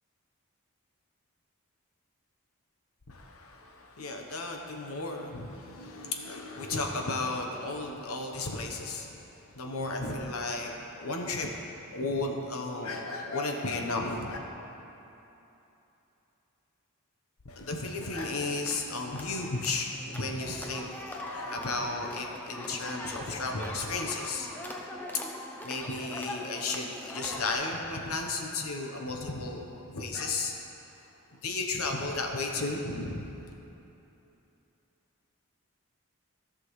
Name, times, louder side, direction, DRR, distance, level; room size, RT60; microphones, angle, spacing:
voice 1, 3.1-9.1 9.5-10.7 11.0-11.5 11.9-14.4 17.4-25.3 25.6-30.5 31.4-33.2, left 3 dB, 85° left, 2 dB, 0.9 m, -34 dB
sound 1, 18.0-27.5, left 1 dB, 10° left, 0.5 m, -42 dB
14.5 x 6.1 x 3.2 m, 3.0 s
head